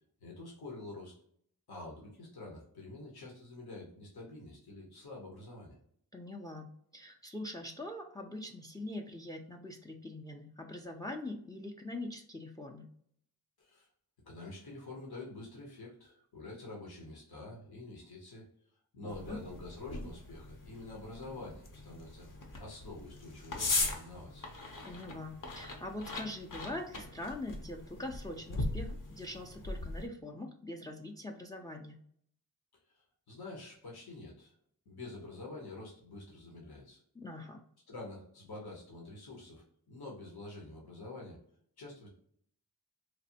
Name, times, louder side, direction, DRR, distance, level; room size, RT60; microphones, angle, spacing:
voice 1, 0.2-1.1 1.7-5.7 13.6-13.9 14.2-18.4 18.9-24.5 32.9-34.5 34.9-37.0 37.9-41.4 41.8-42.1, left 2 dB, 80° left, -2 dB, 1.0 m, -47 dB
voice 2, 6.1-12.9 19.0-19.4 24.8-32.0 37.1-37.6, left 1 dB, 10° left, 3 dB, 0.4 m, -43 dB
sound 1, 19.1-30.1, left 3 dB, 55° left, 0.7 m, -40 dB
3.2 x 2.0 x 2.7 m, 0.65 s
cardioid pair, 45°, 37 cm